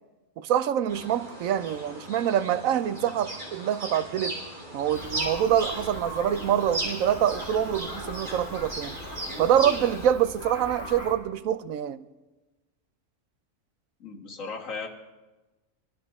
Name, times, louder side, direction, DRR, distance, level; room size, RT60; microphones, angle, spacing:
voice 1, 0.4-4.4 4.7-9.0 9.4-12.0, right 10 dB, 85° right, 1.1 m, -25 dB
sound 1, 0.9-10.1, right 1 dB, 35° right, 3.9 m, -37 dB
sound 2, 4.9-11.1, equal, 20° left, 4.0 m, -40 dB
voice 2, 14.0-14.9, left 4 dB, 75° left, 2.1 m, -36 dB
22.5 x 12.5 x 3.6 m
omnidirectional pair, 1.4 m